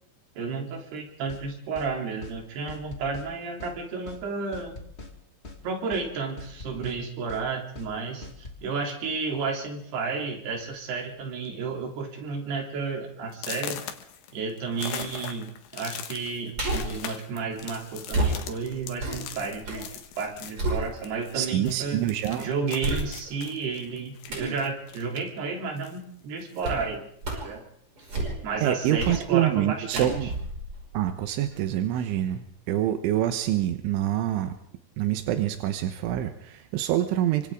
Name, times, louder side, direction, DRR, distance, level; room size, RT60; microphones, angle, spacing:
voice 1, 0.4-4.8 5.6-13.8 14.3-22.0 22.4-27.1 27.4-27.6 28.4-30.1, right 4 dB, 60° right, 1 dB, 5.3 m, -32 dB
sound 1, 1.3-1.5 1.8-1.9 2.2-2.4 2.7-3.3 3.6-3.8 4.1-4.2 4.5-5.1 5.4-5.6 5.9-6.1 6.4-7.0 7.3-7.5 7.8-7.9 8.2-8.6, left 3 dB, 35° left, 1.0 m, -42 dB
sound 2, 8.8-9.1 10.0-10.1 10.4-10.7 11.0-11.5 11.9-12.0 12.5-12.6 13.3-21.4 21.7-25.4 25.8-26.8, left 10 dB, 80° left, 3.6 m, -41 dB
sound 3, 16.5-17.0 18.1-19.9 20.2-21.3 21.9-22.0 22.8-23.5 24.3-24.6 26.6-26.9 27.2-27.6 28.0-28.6 29.0-29.2 29.9-31.6 32.0-32.1, right 2 dB, 30° right, 6.4 m, -31 dB
voice 2, 21.3-22.5 28.6-30.3 30.9-34.6 35.0-37.5, right 12 dB, 90° right, 7 dB, 3.5 m, -26 dB
28.5 x 25.0 x 3.8 m, 0.65 s
omnidirectional pair, 5.5 m